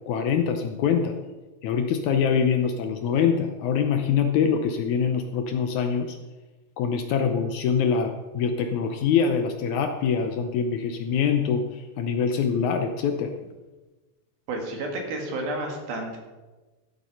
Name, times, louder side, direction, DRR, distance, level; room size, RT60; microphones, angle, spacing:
voice 1, 0.1-1.2 1.6-6.2 6.8-13.3, left 6 dB, 75° left, 6 dB, 1.9 m, -24 dB
voice 2, 14.5-16.2, right 2 dB, 90° right, 1 dB, 4.1 m, -31 dB
14.5 x 8.3 x 5.7 m, 1.2 s
omnidirectional pair, 4.1 m